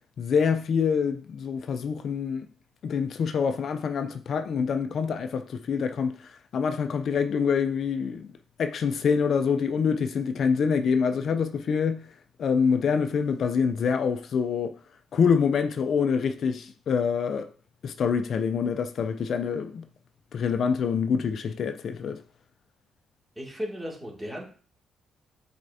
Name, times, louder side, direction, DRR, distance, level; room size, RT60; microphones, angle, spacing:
voice 1, 0.2-2.5 2.8-8.3 8.6-12.1 12.4-14.8 15.1-17.5 17.8-19.8 20.3-22.2, left 6 dB, 60° left, 0.5 m, -26 dB
voice 2, 23.4-24.4, equal, 15° right, 2.3 m, -35 dB
8.1 x 4.3 x 2.7 m
cardioid pair, 90°, 0 cm